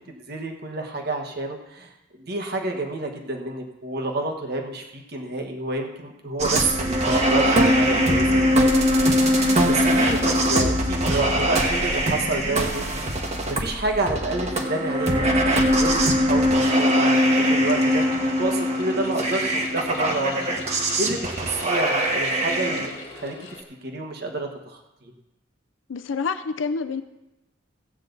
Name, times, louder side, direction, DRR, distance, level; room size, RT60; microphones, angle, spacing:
voice 1, 0.1-1.9 2.2-13.0 13.4-15.3 15.7-20.5 21.0-23.4 23.8-25.1, right 2 dB, 55° right, 2 dB, 1.5 m, -29 dB
sound 1, 6.4-22.9, equal, 35° right, 1.4 m, -21 dB
sound 2, 17.6-23.6, left 3 dB, 30° left, 2.0 m, -41 dB
voice 2, 25.9-27.0, left 5 dB, 80° left, 9 dB, 0.5 m, -27 dB
16.0 x 8.6 x 4.0 m, 0.98 s
head